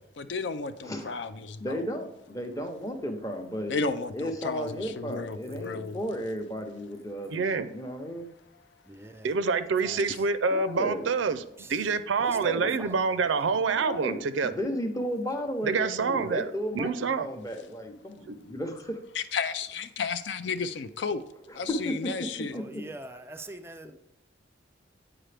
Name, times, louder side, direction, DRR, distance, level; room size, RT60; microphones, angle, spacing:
voice 1, 0.2-1.9 3.7-6.0 10.1-10.2 19.1-21.2 21.6-22.6, left 4 dB, 65° left, 11 dB, 0.4 m, -33 dB
voice 2, 0.8-1.2 1.6-3.8 4.1-8.3 10.5-11.1 12.3-12.8 13.7-19.0 21.5-22.1 22.5-22.6 23.8-23.9, equal, 20° left, 5 dB, 0.8 m, -34 dB
voice 3, 7.3-7.7 9.2-11.4 11.7-14.5 15.6-16.5 16.7-17.3 18.3-18.4, right 5 dB, 85° right, 12 dB, 0.5 m, -27 dB
voice 4, 8.9-9.3 9.8-10.0 11.6-11.7 12.2-13.5 22.5-23.9, right 2 dB, 15° right, 7 dB, 0.4 m, -44 dB
8.8 x 4.9 x 3.3 m, 0.78 s
head